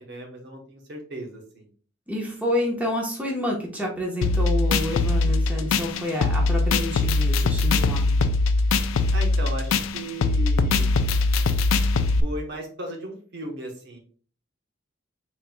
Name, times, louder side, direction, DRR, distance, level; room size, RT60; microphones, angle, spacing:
voice 1, 0.0-1.7 9.1-10.9 12.2-14.0, right 1 dB, 60° right, 2 dB, 1.0 m, -36 dB
voice 2, 2.1-8.0, left 1 dB, 10° right, -2 dB, 1.0 m, -28 dB
sound 1, 4.2-12.2, left 3 dB, 80° left, 0.4 m, -22 dB
4.3 x 3.9 x 2.2 m, 0.42 s
head